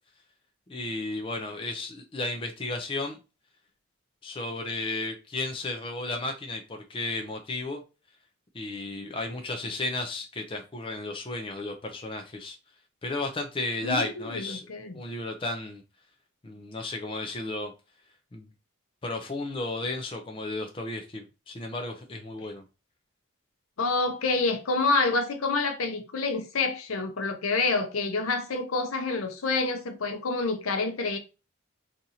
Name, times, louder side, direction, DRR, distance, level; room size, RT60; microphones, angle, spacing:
voice 1, 0.7-3.2 4.2-7.8 8.5-12.6 13.0-14.7 14.9-15.8 16.4-17.7 18.3-18.5 19.0-22.6, left 2 dB, 25° left, 0.4 m, -33 dB
voice 2, 13.8-15.0 23.8-31.2, left 3 dB, 85° left, 0.7 m, -28 dB
2.8 x 2.5 x 4.0 m
head